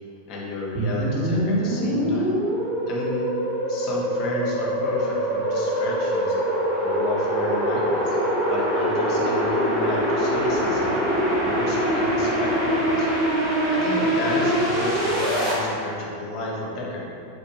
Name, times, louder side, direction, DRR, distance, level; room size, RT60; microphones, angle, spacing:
voice 1, 0.3-2.3 2.9-3.4 3.7-6.4 6.8-8.2 8.5-13.1 13.7-17.1, left 2 dB, 40° left, -4 dB, 0.7 m, -32 dB
sound 1, 0.7-15.5, equal, 25° right, 1.3 m, -23 dB
3.8 x 2.5 x 3.1 m, 2.7 s
figure-of-eight pair, 90°, 0 cm